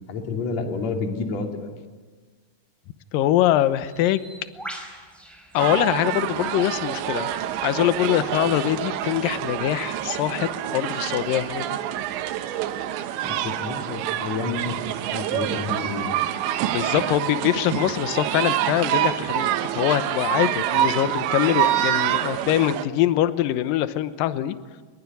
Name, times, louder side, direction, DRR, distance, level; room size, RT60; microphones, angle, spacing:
voice 1, 0.0-1.7 13.2-16.1, left 4 dB, 45° left, 3 dB, 3.3 m, -30 dB
voice 2, 3.1-4.3 5.5-7.3 7.6-11.8 16.7-24.6, left 12 dB, 75° left, 12 dB, 2.2 m, -23 dB
Bird, 3.8-10.3, right 1 dB, ahead, 4.0 m, -45 dB
sound 1, 5.6-22.8, right 12 dB, 85° right, 3.3 m, -26 dB
24.0 x 22.0 x 9.5 m, 1.4 s
omnidirectional pair, 5.1 m